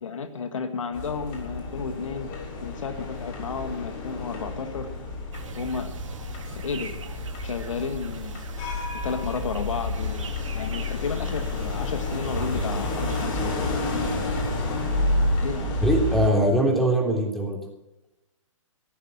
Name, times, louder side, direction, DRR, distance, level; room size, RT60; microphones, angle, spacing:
voice 1, 0.0-2.3 2.6-4.9 5.6-5.9 6.6-6.9 7.4-8.4 9.0-13.6 15.4-15.8, left 5 dB, 70° left, 8 dB, 1.7 m, -32 dB
sound 1, 0.9-16.3, left 2 dB, 40° left, 6.9 m, -30 dB
sound 2, 5.3-13.3, right 5 dB, 65° right, 2.3 m, -40 dB
voice 2, 15.8-17.6, right 1 dB, ahead, 0 dB, 3.3 m, -22 dB
15.5 x 11.0 x 7.2 m, 0.96 s
hypercardioid pair, 130°, 17 cm